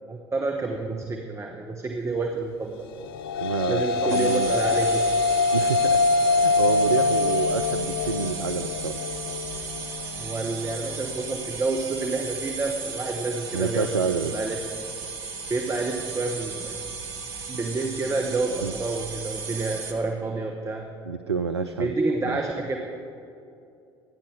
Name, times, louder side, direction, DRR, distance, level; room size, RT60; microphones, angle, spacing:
voice 1, 0.1-2.9 3.7-5.0 10.2-14.6 15.5-16.8 17.5-20.9 21.8-22.8, right 3 dB, 20° right, 2 dB, 1.2 m, -29 dB
sound 1, 2.9-11.5, left 3 dB, 70° left, 0.4 m, -25 dB
voice 2, 3.4-4.5 5.5-6.0 6.3-9.0 13.5-14.3 18.6-18.7 21.0-21.9 22.3-22.4, right 5 dB, 85° right, 8 dB, 0.4 m, -28 dB
sound 2, 4.1-19.9, right 5 dB, 70° right, 1.3 m, -35 dB
24.5 x 10.5 x 3.4 m, 2.6 s
figure-of-eight pair, 60°, 13 cm